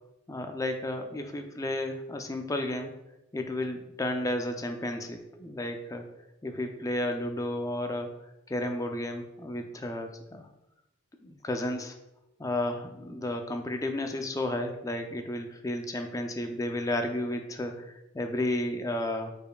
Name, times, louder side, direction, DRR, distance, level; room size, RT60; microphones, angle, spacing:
voice 1, 0.3-2.9 3.3-6.1 6.4-8.1 8.5-10.5 11.2-12.0 12.4-19.3, left 1 dB, 15° left, 5 dB, 0.4 m, -32 dB
5.3 x 4.3 x 2.3 m, 0.92 s
head